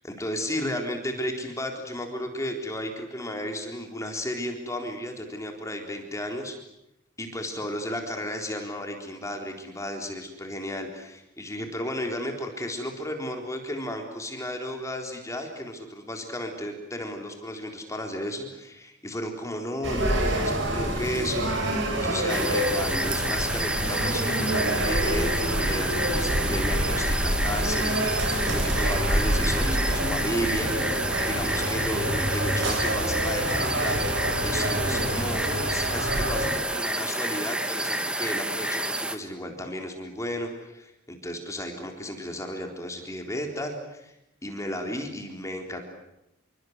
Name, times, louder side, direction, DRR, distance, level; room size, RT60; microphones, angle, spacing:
voice 1, 0.0-6.6 7.2-44.1 44.4-45.8, left 1 dB, 15° left, 3 dB, 4.0 m, -34 dB
sound 1, 19.8-36.6, right 1 dB, 65° right, 7.9 m, -27 dB
sound 2, 22.3-39.2, right 1 dB, 5° right, 1.8 m, -29 dB
28.5 x 23.5 x 8.1 m, 0.85 s
head